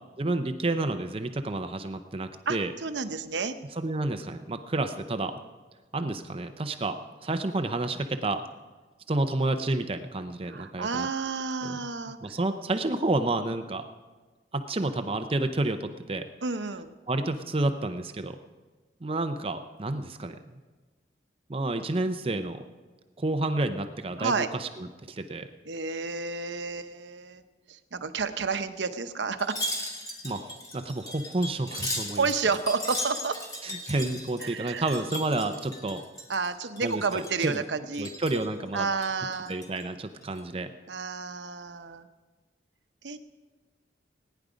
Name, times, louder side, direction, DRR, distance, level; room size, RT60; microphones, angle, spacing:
voice 1, 0.2-2.7 3.8-5.3 5.9-8.4 9.1-11.1 11.6-11.8 12.2-13.8 14.5-16.2 17.1-18.4 19.0-20.4 21.5-22.6 23.2-25.5 30.2-32.3 33.6-36.0 36.8-37.6 38.0-38.9 39.5-40.7, right 2 dB, 30° right, 8 dB, 0.6 m, -30 dB
voice 2, 2.5-3.6 10.5-12.2 16.4-16.9 24.2-24.5 25.6-27.4 27.7-29.6 32.1-33.4 34.4-34.8 36.3-38.1 38.7-39.6 40.9-42.1 43.0-43.2, right 4 dB, 80° right, 9 dB, 0.8 m, -30 dB
Wind chime, 29.4-36.5 36.8-37.6 37.9-38.5 38.9-39.8 40.2-40.4, left 1 dB, 20° left, 2.0 m, -37 dB
18.5 x 10.0 x 5.1 m, 1.3 s
head